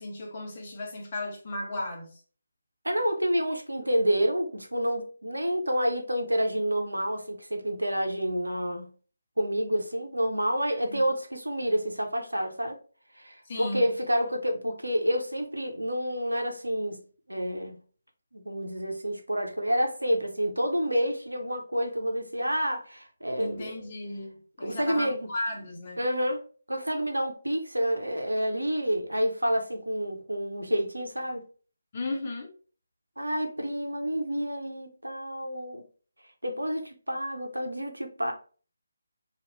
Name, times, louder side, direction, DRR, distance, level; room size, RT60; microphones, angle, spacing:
voice 1, 0.0-2.2 10.7-11.0 13.5-13.9 23.4-26.0 31.9-32.5, left 2 dB, 35° left, 0.9 m, -35 dB
voice 2, 2.8-8.9 9.4-12.8 13.2-17.0 17.3-17.8 18.3-23.9 24.6-25.2 26.0-26.4 26.7-31.4 33.2-35.8 36.4-38.3, equal, 80° right, 0.7 m, -29 dB
3.0 x 2.4 x 3.1 m
figure-of-eight pair, 150°, 0 cm